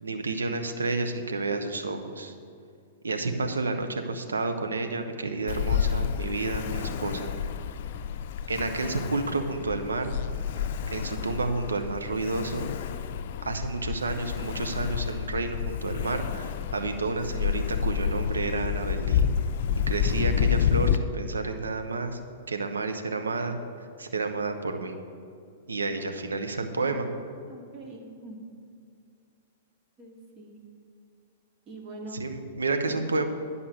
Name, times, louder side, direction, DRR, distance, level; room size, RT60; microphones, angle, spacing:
voice 1, 0.0-2.3 3.0-7.3 8.5-10.1 10.5-10.6 10.9-12.8 13.4-19.2 19.9-22.2 22.5-23.6 24.0-24.9 25.7-27.1 32.1-33.2, right 3 dB, 85° right, 6 dB, 1.0 m, -30 dB
Ocean, 5.5-21.0, left 8 dB, 55° left, 0.5 m, -29 dB
voice 2, 27.5-28.5 30.0-30.6 31.7-32.2 32.9-33.0, right 1 dB, 35° right, 1 dB, 2.1 m, -43 dB
10.5 x 5.6 x 7.8 m, 2.3 s
hypercardioid pair, 110°, 0 cm